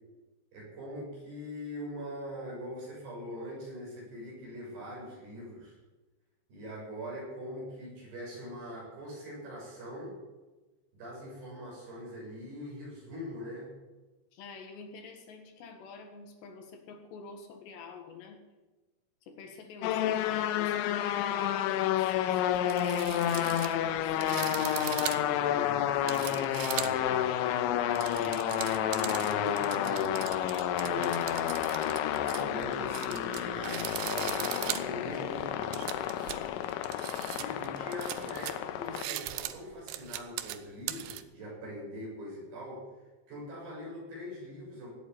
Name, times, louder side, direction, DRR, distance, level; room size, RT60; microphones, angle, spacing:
voice 1, 0.5-5.8 6.5-10.2 10.9-13.7 24.3-27.2 28.1-31.5 32.2-36.0 37.3-42.8 43.3-44.9, equal, 60° right, -4 dB, 9.3 m, -42 dB
voice 2, 14.3-18.5 19.2-24.7 27.1-27.6, left 5 dB, 70° left, 4 dB, 3.7 m, -47 dB
sound 1, 19.8-39.0, left 11 dB, 90° left, 3.2 m, -30 dB
sound 2, 22.1-22.2 22.5-27.2 27.7-41.2, right 14 dB, 80° right, 2.3 m, -39 dB
17.5 x 8.3 x 8.6 m, 1.2 s
omnidirectional pair, 5.3 m